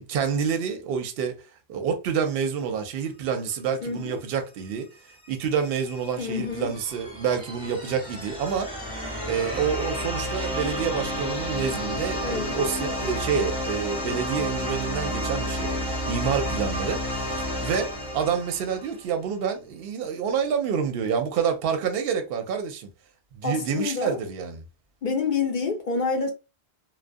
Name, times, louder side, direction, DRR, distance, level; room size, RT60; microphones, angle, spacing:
voice 1, 0.0-1.4 1.7-4.9 5.3-17.0 17.4-22.9 23.3-24.6, right 7 dB, 70° right, 0.7 m, -28 dB
voice 2, 3.8-4.2 6.2-6.7 12.2-12.6 23.4-24.2 25.0-26.3, left 5 dB, 55° left, 0.7 m, -28 dB
sound 1, 5.2-19.1, equal, 5° right, 0.7 m, -31 dB
2.4 x 2.1 x 2.5 m
omnidirectional pair, 1.1 m